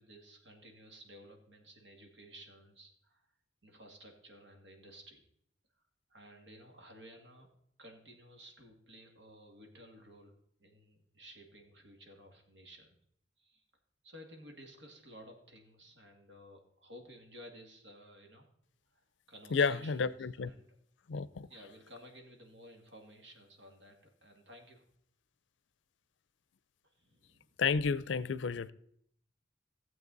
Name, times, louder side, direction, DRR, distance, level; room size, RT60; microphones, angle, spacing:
voice 1, 0.0-3.3 3.6-5.2 6.1-7.5 7.8-13.0 13.4-13.6 14.0-18.5 18.9-20.7 21.5-24.8 26.8-27.6, equal, 75° right, 2.1 m, -55 dB
voice 2, 19.5-20.5 21.1-21.5 27.6-28.7, left 5 dB, 80° left, 0.5 m, -31 dB
15.5 x 7.6 x 4.0 m
head